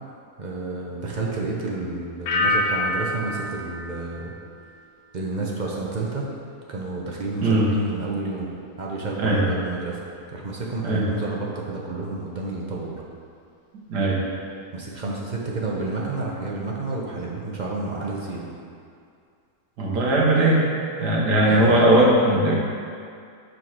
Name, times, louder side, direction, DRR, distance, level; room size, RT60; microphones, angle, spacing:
voice 1, 0.4-4.3 5.1-6.3 6.7-8.5 8.8-10.0 10.3-13.0 14.7-18.5 21.4-21.8, right 3 dB, 55° right, -3 dB, 0.5 m, -30 dB
sound 1, 2.3-5.1 5.4-5.9, left 1 dB, 70° left, 1.1 m, -28 dB
voice 2, 13.9-14.2 19.8-20.6 21.0-22.5, right 1 dB, 85° right, -4 dB, 1.7 m, -18 dB
5.7 x 5.2 x 4.7 m, 2.3 s
omnidirectional pair, 1.8 m